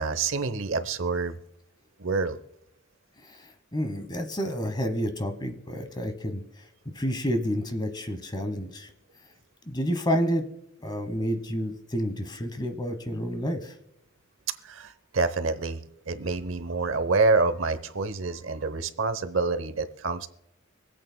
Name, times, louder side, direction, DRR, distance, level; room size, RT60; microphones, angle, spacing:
voice 1, 0.0-1.4 2.0-2.4 14.6-15.8 16.1-20.3, right 3 dB, 75° right, 11 dB, 0.8 m, -27 dB
voice 2, 3.7-6.4 6.9-8.9 9.7-10.5 10.8-13.8, equal, 20° left, 8 dB, 1.1 m, -29 dB
25.0 x 8.4 x 2.2 m, 0.83 s
head